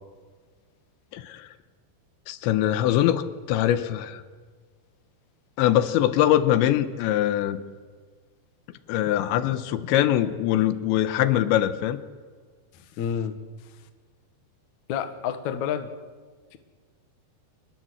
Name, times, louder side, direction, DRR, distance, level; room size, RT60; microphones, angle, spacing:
voice 1, 1.1-1.5 2.3-3.2 3.5-4.2 5.6-7.6 8.9-12.0, left 12 dB, 80° left, 12 dB, 3.2 m, -22 dB
voice 2, 12.7-13.4 14.9-15.9 16.5-16.6, left 8 dB, 60° left, 8 dB, 2.1 m, -29 dB
26.5 x 20.5 x 8.0 m, 1.5 s
omnidirectional pair, 5.2 m